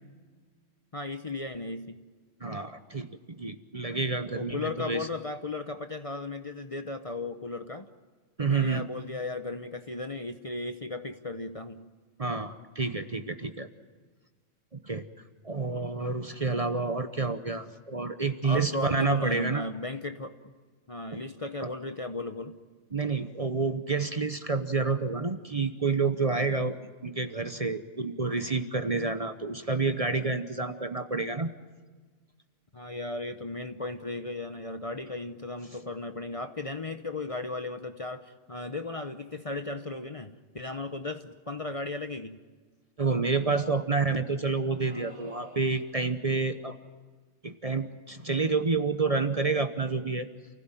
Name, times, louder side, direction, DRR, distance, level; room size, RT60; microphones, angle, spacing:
voice 1, 0.9-2.0 4.4-7.9 8.4-11.8 18.4-20.5 20.9-22.5 32.7-42.4, left 2 dB, 30° left, 8 dB, 0.9 m, -36 dB
voice 2, 2.4-3.1 3.4-5.1 8.4-8.8 12.2-13.7 14.7-15.1 15.4-19.6 21.1-21.2 21.6-21.7 22.9-26.8 27.0-31.5 43.0-46.8 47.4-50.3, right 4 dB, 30° right, 9 dB, 1.0 m, -29 dB
sound 1, 44.7-46.1, right 1 dB, 60° right, 3.9 m, -52 dB
29.0 x 16.0 x 9.0 m, 1.5 s
omnidirectional pair, 1.3 m